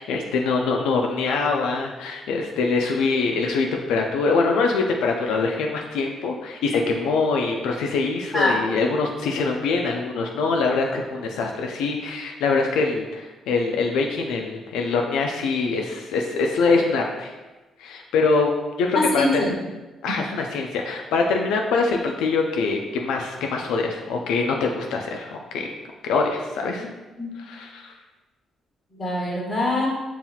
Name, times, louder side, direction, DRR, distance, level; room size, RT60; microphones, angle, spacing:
voice 1, 0.0-17.4 17.8-18.5 18.8-19.5 20.0-25.7 26.0-26.8 27.4-28.0, left 4 dB, 90° left, 1 dB, 0.3 m, -24 dB
voice 2, 18.9-19.5 26.8-26.9 27.2-27.3 29.0-29.9, left 2 dB, 30° left, -4 dB, 1.4 m, -23 dB
5.5 x 2.8 x 2.3 m, 1.2 s
cardioid pair, 90°, 0 cm